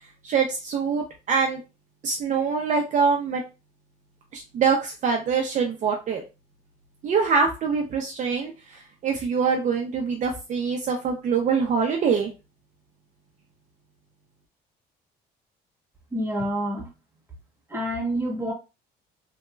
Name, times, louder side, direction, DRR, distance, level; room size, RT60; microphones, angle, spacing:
voice 1, 0.2-1.6 2.0-3.4 4.3-6.2 7.0-12.3, right 5 dB, 45° right, 2 dB, 0.6 m, -24 dB
voice 2, 16.1-16.9 17.7-18.5, right 1 dB, 15° right, 0 dB, 1.1 m, -27 dB
3.1 x 2.8 x 2.3 m, 0.29 s
cardioid pair, 110°, 17 cm